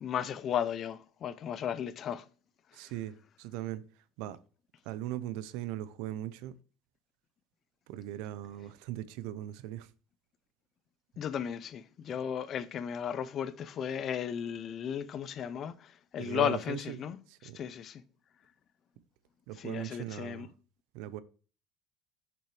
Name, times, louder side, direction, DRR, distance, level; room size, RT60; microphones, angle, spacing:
voice 1, 0.0-2.2 11.2-17.2 17.5-18.0 19.6-20.5, left 9 dB, 30° left, 0.5 m, -35 dB
voice 2, 2.7-3.8 4.2-4.4 4.9-6.5 7.9-9.9 16.2-17.0 17.3-17.6 19.5-20.5 20.9-21.2, right 13 dB, 70° right, 0.6 m, -39 dB
8.4 x 7.0 x 3.2 m
cardioid pair, 180°, 0 cm